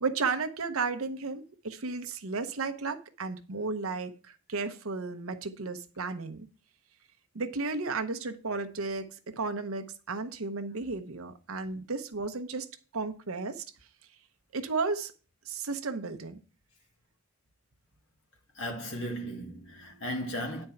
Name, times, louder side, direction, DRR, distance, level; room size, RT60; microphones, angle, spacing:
voice 1, 0.0-6.5 7.3-9.1 9.4-13.6 14.5-15.1 15.5-16.4, right 4 dB, 75° right, 0.8 m, -33 dB
voice 2, 18.6-20.7, equal, 60° left, 2.2 m, -36 dB
9.8 x 4.4 x 5.7 m
head